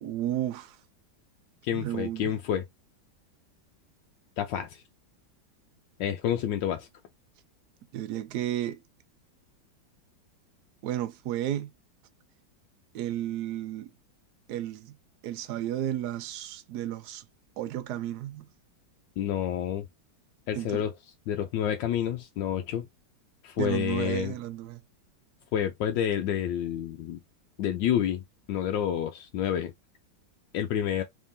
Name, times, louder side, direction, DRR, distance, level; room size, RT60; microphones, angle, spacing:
voice 1, 0.0-0.8 1.7-2.4 7.9-8.8 10.8-11.7 12.9-13.9 14.5-15.0 15.2-17.2 17.6-18.5 20.5-20.9 23.6-24.8, right 12 dB, 70° right, 1.1 m, -33 dB
voice 2, 1.6-2.6 4.4-4.8 6.0-6.9 19.2-19.8 20.5-20.9 21.3-22.9 23.4-24.3 25.5-27.2 27.6-28.2 28.5-29.7 30.5-31.0, left 10 dB, 80° left, 1.2 m, -29 dB
3.6 x 3.4 x 2.6 m
omnidirectional pair, 2.0 m